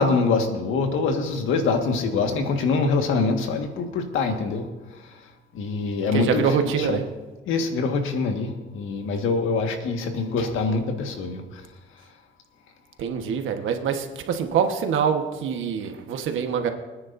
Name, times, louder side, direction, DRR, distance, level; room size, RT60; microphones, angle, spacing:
voice 1, 0.0-4.7 5.5-7.0 7.5-11.6, left 4 dB, 85° left, 4 dB, 1.7 m, -24 dB
voice 2, 6.1-7.0 13.0-16.7, right 7 dB, 80° right, 6 dB, 1.3 m, -25 dB
25.0 x 9.6 x 2.7 m, 1.2 s
cardioid pair, 90°, 20 cm